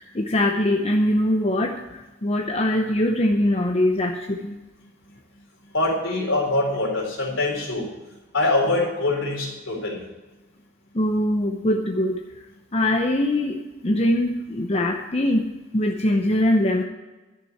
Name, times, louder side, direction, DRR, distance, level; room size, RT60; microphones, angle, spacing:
voice 1, 0.1-4.6 10.9-12.2 12.7-15.5 15.7-16.8, left 1 dB, 30° left, 3 dB, 0.7 m, -22 dB
voice 2, 5.7-7.9 8.3-10.0, left 2 dB, 70° left, -1 dB, 4.0 m, -23 dB
11.0 x 6.8 x 8.5 m, 1.1 s
head